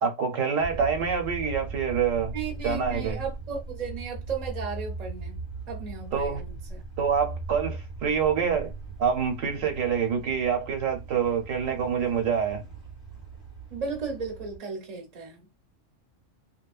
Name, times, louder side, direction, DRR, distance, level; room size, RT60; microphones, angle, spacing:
voice 1, 0.0-2.3 2.6-3.2 6.1-6.4 7.0-8.7 9.0-12.6, right 6 dB, 85° right, 1.1 m, -26 dB
sound 1, 0.6-14.6, right 3 dB, 25° left, 1.4 m, -39 dB
voice 2, 2.3-5.4 5.7-6.8 13.7-15.5, right 5 dB, 40° right, 0.7 m, -35 dB
2.8 x 2.1 x 2.3 m
omnidirectional pair, 1.3 m